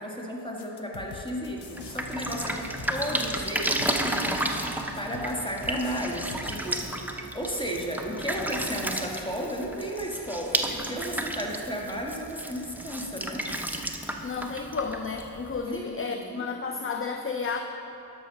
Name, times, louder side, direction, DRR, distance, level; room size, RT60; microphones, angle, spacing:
voice 1, 0.0-13.5 15.7-16.5, equal, 10° left, -1 dB, 1.9 m, -34 dB
sound 1, 0.6-6.9, left 6 dB, 75° left, 0.8 m, -45 dB
Drip, 1.6-15.6, right 1 dB, 5° right, 0.9 m, -32 dB
sound 2, 1.8-9.4, right 5 dB, 45° right, 0.7 m, -48 dB
voice 2, 14.2-17.6, left 5 dB, 30° left, 5 dB, 0.6 m, -32 dB
12.0 x 6.3 x 5.5 m, 2.9 s
cardioid pair, 45°, 41 cm